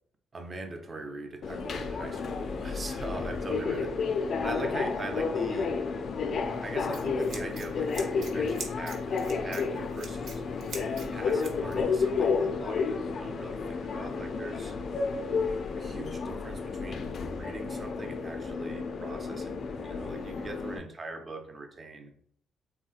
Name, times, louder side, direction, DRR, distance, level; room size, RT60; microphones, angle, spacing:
voice 1, 0.3-5.8 6.6-10.4 11.1-14.7 15.8-17.1 17.4-19.6 19.8-22.1, right 2 dB, 35° right, 5 dB, 0.5 m, -41 dB
Subway metro underground, 1.4-20.8, left 5 dB, 55° left, 0.3 m, -31 dB
Scissors, 6.4-11.8, equal, 75° right, 0.7 m, -43 dB
3.2 x 2.8 x 2.4 m, 0.63 s
cardioid pair, 90°, 0 cm